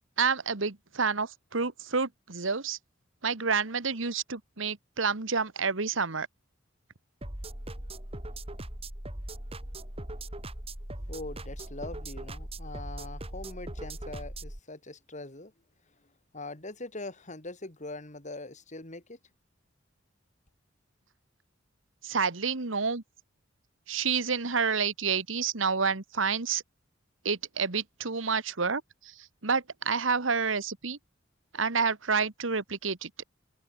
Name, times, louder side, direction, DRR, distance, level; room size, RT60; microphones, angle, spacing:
voice 1, 0.2-2.8 3.2-6.3 22.0-23.0 23.9-26.6 27.2-29.1 29.4-31.0 31.5-33.1, right 5 dB, 85° right, 1.6 m, -29 dB
sound 1, 7.2-14.6, right 1 dB, 30° right, 3.6 m, -40 dB
voice 2, 11.1-15.5 16.3-19.2, left 2 dB, 40° left, 3.6 m, -42 dB
head